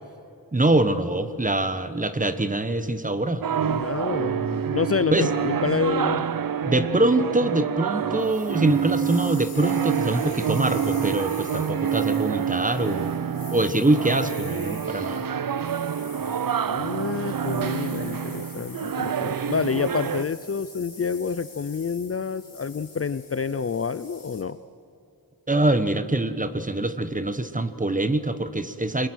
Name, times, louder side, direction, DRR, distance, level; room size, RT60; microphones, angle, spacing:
voice 1, 0.5-3.4 5.1-5.3 6.6-13.1 13.5-15.2 25.5-29.1, right 2 dB, 20° right, 11 dB, 1.1 m, -24 dB
sound 1, 3.4-20.2, right 8 dB, 60° right, 0.7 m, -27 dB
voice 2, 3.7-6.3 16.6-24.6, left 5 dB, 40° left, 15 dB, 0.5 m, -28 dB
sound 2, 8.2-24.4, left 4 dB, 60° left, 4.2 m, -46 dB
28.5 x 21.5 x 6.3 m, 2.6 s
wide cardioid pair, 115°, 39 cm